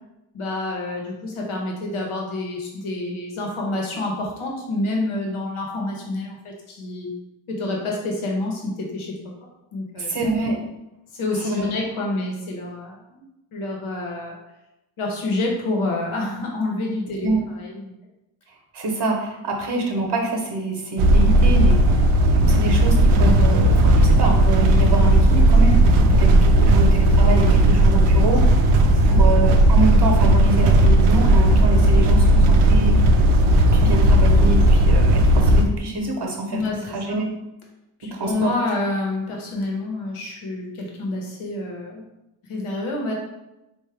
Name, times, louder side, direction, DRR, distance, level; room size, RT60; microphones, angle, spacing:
voice 1, 0.3-7.1 7.5-10.2 11.1-13.2 13.5-14.4 15.0-17.9 26.0-26.2 28.8-29.2 36.5-37.2 38.0-42.0 42.5-43.1, left 2 dB, 75° left, -1 dB, 1.1 m, -28 dB
voice 2, 10.0-10.6 11.4-11.7 17.2-17.4 18.7-28.4 29.0-33.0 33.7-37.3 38.0-38.5, right 2 dB, 55° right, 1 dB, 1.0 m, -26 dB
sound 1, 21.0-35.6, right 1 dB, 80° right, 0.6 m, -15 dB
3.6 x 2.5 x 3.3 m, 0.93 s
supercardioid pair, 40°, 49 cm